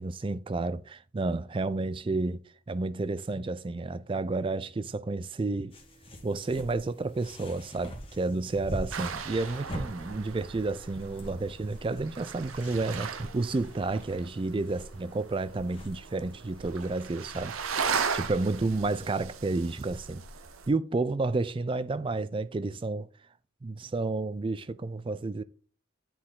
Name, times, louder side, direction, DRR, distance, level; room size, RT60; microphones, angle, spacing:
voice 1, 0.0-2.4 2.7-5.7 6.2-17.5 18.1-20.2 20.7-23.1 23.6-25.4, right 3 dB, 25° right, 0.3 m, -31 dB
sound 1, 5.7-18.0, equal, 25° left, 1.4 m, -45 dB
sound 2, 8.9-20.7, right 5 dB, 90° right, 0.7 m, -37 dB
9.5 x 4.2 x 3.7 m
head